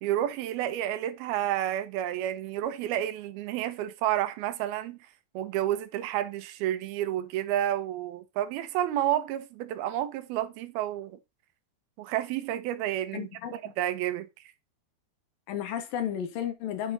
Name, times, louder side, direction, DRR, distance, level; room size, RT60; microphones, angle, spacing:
voice 1, 0.0-5.0 5.3-11.2 12.0-14.3, right 12 dB, 85° right, 2.9 m, -30 dB
voice 2, 13.1-13.7 15.5-16.9, left 9 dB, 75° left, 3.0 m, -33 dB
9.7 x 5.7 x 4.0 m
omnidirectional pair, 4.3 m